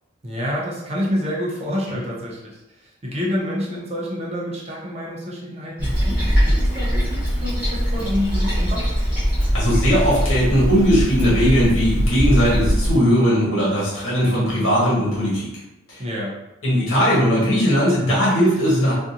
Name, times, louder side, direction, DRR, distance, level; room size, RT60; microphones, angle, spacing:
voice 1, 0.2-8.9 16.0-16.3, equal, 30° right, -4 dB, 0.6 m, -28 dB
Toilet flush, 5.8-13.0, equal, 5° right, 0.9 m, -21 dB
voice 2, 9.5-15.5 15.9-16.0 16.6-18.9, equal, 85° left, -7 dB, 1.4 m, -18 dB
2.7 x 2.5 x 2.4 m, 0.97 s
head